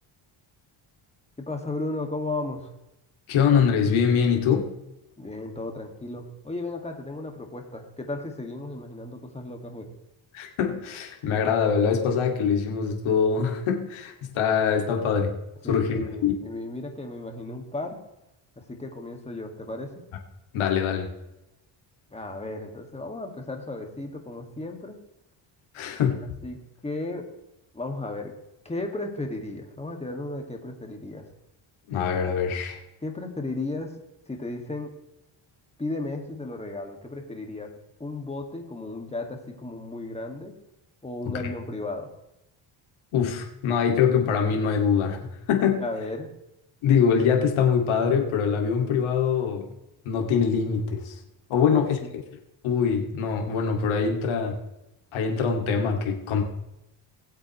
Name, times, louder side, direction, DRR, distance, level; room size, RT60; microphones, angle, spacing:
voice 1, 1.5-2.7 5.2-9.9 15.6-18.0 18.6-19.9 22.1-25.0 26.2-26.6 26.8-27.3 27.7-28.3 28.6-31.3 33.0-34.0 34.3-34.9 35.8-37.7 38.0-40.5 41.0-42.1 45.8-46.3 51.6-52.1, left 2 dB, 15° left, 3 dB, 2.1 m, -34 dB
voice 2, 3.3-4.7 10.3-15.4 15.7-16.3 20.5-21.1 25.7-26.2 31.9-32.8 43.1-45.8 46.8-49.7 50.0-51.2 51.5-52.0 52.6-54.6 55.1-56.4, left 6 dB, 80° left, 2 dB, 2.4 m, -23 dB
20.0 x 8.2 x 3.2 m, 0.92 s
cardioid pair, 125°, 48 cm